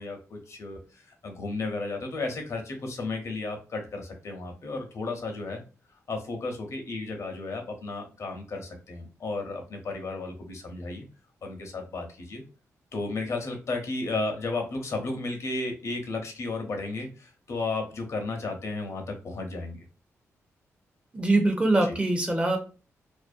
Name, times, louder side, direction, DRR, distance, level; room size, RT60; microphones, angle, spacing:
voice 1, 0.0-5.6 6.1-11.0 11.4-12.4 12.9-19.8 21.9-22.0, left 3 dB, 60° left, 4 dB, 0.7 m, -33 dB
voice 2, 21.1-22.6, right 2 dB, 20° right, 3 dB, 0.6 m, -23 dB
2.5 x 2.0 x 2.4 m, 0.34 s
cardioid pair, 85°, 6 cm